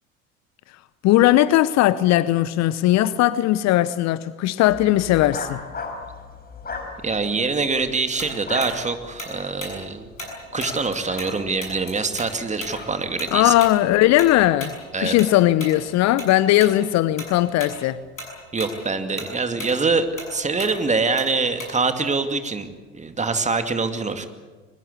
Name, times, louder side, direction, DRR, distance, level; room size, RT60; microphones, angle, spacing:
voice 1, 1.0-5.6 13.3-18.0, left 14 dB, 45° left, 0.9 m, -18 dB
sound 1, 4.6-14.6, left 4 dB, 25° left, 4.9 m, -39 dB
voice 2, 7.0-10.1 10.5-13.5 14.9-15.1 18.5-22.7 22.9-24.3, right 4 dB, 20° right, 2.4 m, -24 dB
Tick-tock, 8.2-11.3 11.6-16.3 16.6-16.8 17.2-17.8 18.1-22.0, left 1 dB, 85° left, 6.9 m, -36 dB
22.5 x 20.5 x 8.4 m
figure-of-eight pair, 70°, 39 cm